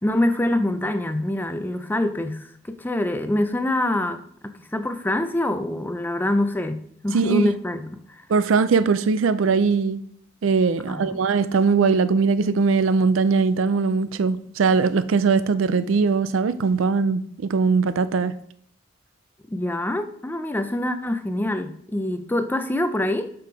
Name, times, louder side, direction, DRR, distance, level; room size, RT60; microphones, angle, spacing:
voice 1, 0.0-8.2 10.9-11.2 19.5-23.3, left 1 dB, 10° left, 0.4 m, -25 dB
voice 2, 7.1-7.5 8.3-10.0 10.4-18.3, right 5 dB, 80° right, 0.4 m, -20 dB
8.3 x 4.6 x 4.0 m
head